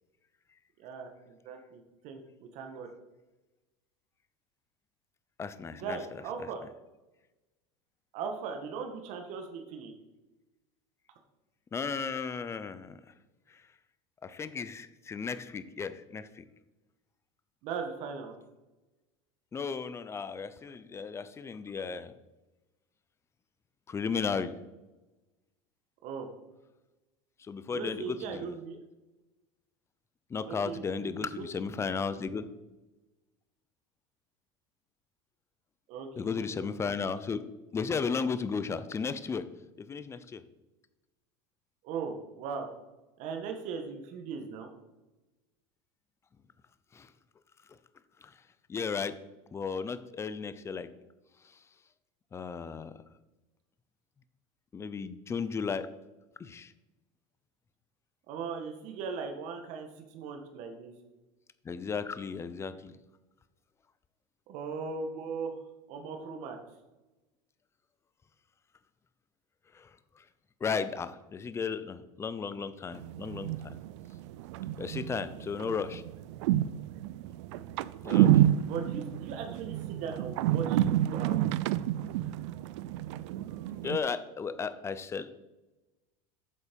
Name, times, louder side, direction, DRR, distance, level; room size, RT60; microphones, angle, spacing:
voice 1, 0.8-2.2 2.5-2.9 5.7-6.6 8.1-9.9 17.6-18.3 26.0-26.3 27.7-28.8 30.4-31.4 35.9-36.9 41.8-42.7 43.2-44.7 58.3-60.9 64.5-65.6 65.9-66.6 77.5-77.7 78.7-81.4, right 5 dB, 55° right, 4 dB, 1.6 m, -39 dB
voice 2, 5.4-6.0 11.7-13.0 14.2-16.4 19.5-22.1 23.9-24.5 27.5-28.5 30.3-32.5 36.2-37.4 37.7-39.4 39.8-40.4 46.9-47.1 48.2-48.3 48.7-49.1 49.5-50.9 52.3-52.9 54.7-55.9 56.4-56.7 61.6-62.9 66.2-66.3 69.7-69.9 70.6-73.8 74.8-76.0 78.0-78.5 83.8-85.4, left 5 dB, 20° left, 13 dB, 0.6 m, -34 dB
sound 1, 73.0-84.0, right 12 dB, 80° right, 0.4 m, -29 dB
8.4 x 7.1 x 5.3 m, 1.1 s
supercardioid pair, 130°, 15 cm